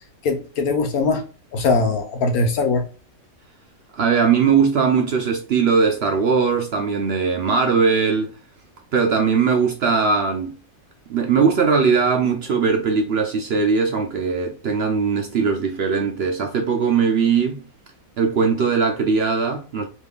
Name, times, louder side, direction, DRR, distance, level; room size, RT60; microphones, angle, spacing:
voice 1, 0.2-1.2 1.5-2.8, left 3 dB, 85° left, 1.3 m, -21 dB
voice 2, 3.9-8.3 8.9-10.5 11.1-17.6 18.2-19.8, right 5 dB, 65° right, 0.6 m, -20 dB
3.5 x 3.2 x 2.3 m
omnidirectional pair, 1.5 m